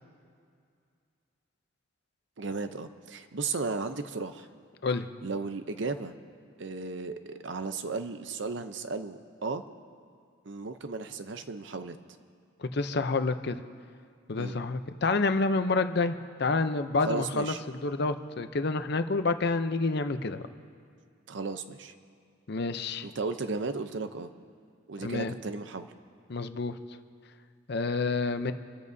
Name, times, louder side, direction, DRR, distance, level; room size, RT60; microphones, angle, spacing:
voice 1, 2.4-4.5 5.2-6.1 6.6-9.6 10.5-12.0 14.3-14.6 17.0-17.6 21.3-21.9 23.0-24.3 24.9-25.9, right 4 dB, 65° right, 9 dB, 0.7 m, -35 dB
voice 2, 12.6-13.6 14.3-20.4 22.5-23.1 25.0-25.3 26.3-26.8 27.7-28.5, left 3 dB, 55° left, 9 dB, 0.6 m, -28 dB
28.0 x 13.5 x 2.7 m, 2.3 s
head